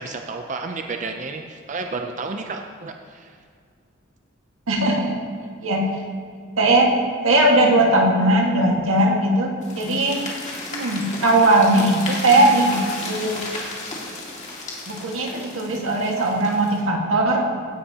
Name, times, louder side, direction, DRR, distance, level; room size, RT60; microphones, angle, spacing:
voice 1, 0.0-3.4, right 3 dB, 35° right, 4 dB, 0.5 m, -31 dB
voice 2, 4.7-5.2 5.6-5.8 6.6-6.9 7.2-10.2 10.7-13.4 14.9-17.4, right 1 dB, 90° right, 0 dB, 1.7 m, -19 dB
sound 1, 9.6-16.8, left 2 dB, 35° left, 2.1 m, -34 dB
16.5 x 9.9 x 2.9 m, 2.1 s
head